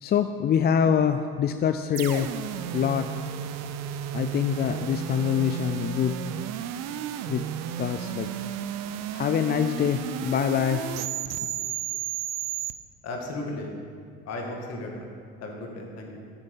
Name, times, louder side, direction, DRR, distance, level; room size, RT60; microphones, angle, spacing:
voice 1, 0.0-2.3 2.7-3.1 4.1-6.2 7.3-7.5 7.8-8.3 9.1-10.9, left 8 dB, 35° left, 9 dB, 0.4 m, -25 dB
sound 1, 1.9-12.7, right 10 dB, 60° right, 0.6 m, -33 dB
voice 2, 13.0-13.7 14.3-15.1 15.4-16.2, left 2 dB, 60° left, 1 dB, 2.0 m, -35 dB
9.6 x 7.1 x 5.4 m, 2.2 s
supercardioid pair, 75°, 30 cm